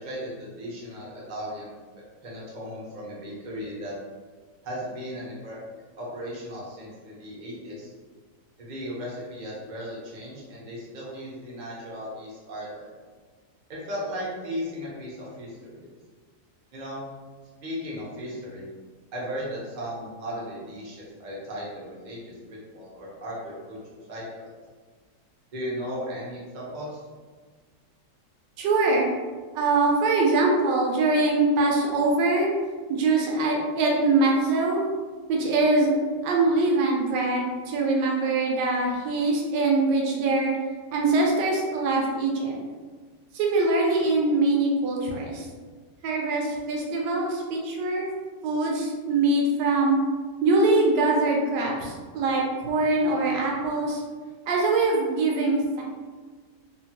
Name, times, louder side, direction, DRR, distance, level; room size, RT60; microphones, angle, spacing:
voice 1, 0.0-3.9 4.6-5.6 6.0-7.9 8.6-12.9 13.7-15.9 16.7-17.0 17.6-18.7 19.1-24.5 25.5-27.0, equal, 60° right, -5 dB, 0.4 m, -36 dB
voice 2, 28.6-29.1 29.5-32.5 32.9-34.8 35.3-35.9 36.2-40.5 40.9-42.6 43.3-45.4 46.0-48.1 48.4-50.0 50.4-54.0 54.5-55.8, right 2 dB, 90° right, -1 dB, 1.2 m, -23 dB
3.2 x 2.1 x 2.7 m, 1.4 s
omnidirectional pair, 1.8 m